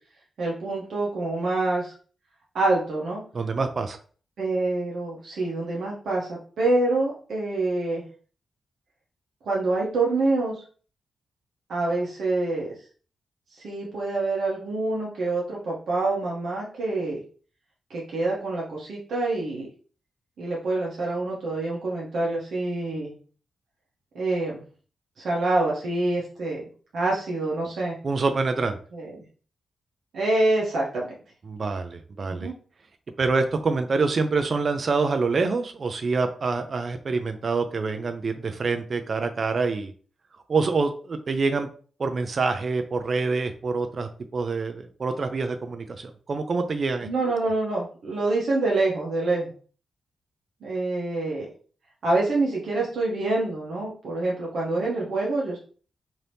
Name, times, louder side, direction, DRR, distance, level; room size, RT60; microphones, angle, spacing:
voice 1, 0.4-1.9 2.5-3.2 4.4-6.3 6.6-8.0 9.5-10.5 11.7-12.7 13.6-17.2 17.9-19.7 20.4-23.1 24.1-24.6 25.2-26.6 26.9-28.0 28.9-29.1 30.1-31.1 32.3-32.5 47.0-49.5 50.6-51.5 52.0-55.6, right 2 dB, 75° right, -3 dB, 0.8 m, -26 dB
voice 2, 3.3-4.0 28.0-28.8 31.5-32.5 33.2-39.9 40.5-41.7 42.0-47.1, right 4 dB, 45° right, 7 dB, 0.4 m, -26 dB
2.8 x 2.6 x 3.3 m, 0.42 s
wide cardioid pair, 110°, 0 cm